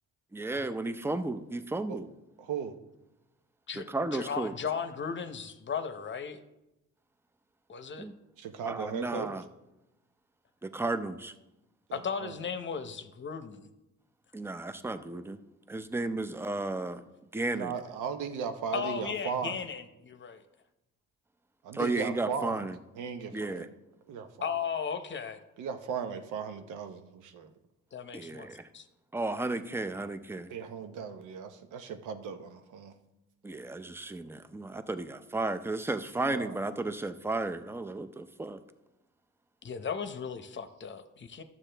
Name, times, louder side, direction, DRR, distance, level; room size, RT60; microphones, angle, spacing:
voice 1, 0.3-2.1 3.7-4.6 8.0-8.1 8.7-9.4 10.6-11.3 14.3-15.4 15.7-17.0 17.3-17.8 21.7-22.8 23.3-23.7 28.1-28.7 29.1-30.5 33.4-38.6, right 2 dB, 10° right, 11 dB, 0.5 m, -33 dB
voice 2, 2.4-2.8 8.4-9.3 11.9-12.4 17.5-19.6 21.6-22.7 23.0-23.7 24.1-24.6 25.6-27.5 30.5-33.0 36.2-36.6, right 6 dB, 85° right, 8 dB, 0.9 m, -37 dB
voice 3, 4.1-6.4 7.7-8.1 11.9-13.7 18.7-20.4 24.4-25.4 27.9-28.5 28.7-28.9 39.6-41.4, left 6 dB, 40° left, 10 dB, 0.8 m, -36 dB
12.0 x 7.3 x 3.4 m, 0.96 s
cardioid pair, 90°, 30 cm